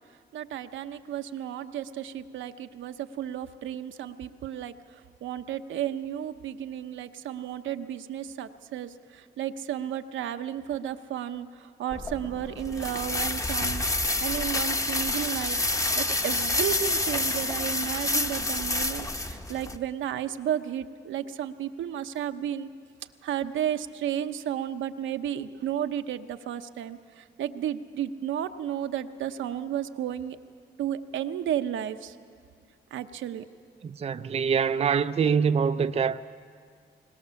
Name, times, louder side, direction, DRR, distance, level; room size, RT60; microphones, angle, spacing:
voice 1, 0.3-4.7 5.2-13.8 14.2-15.6 16.0-22.7 23.2-30.4 30.8-32.1 32.9-33.4, right 10 dB, 75° right, 0.9 m, -33 dB
sound 1, 11.9-19.8, left 2 dB, 15° left, 1.1 m, -28 dB
voice 2, 33.8-36.2, right 6 dB, 30° right, 0.5 m, -25 dB
22.5 x 19.5 x 7.0 m
cardioid pair, 90°, 20 cm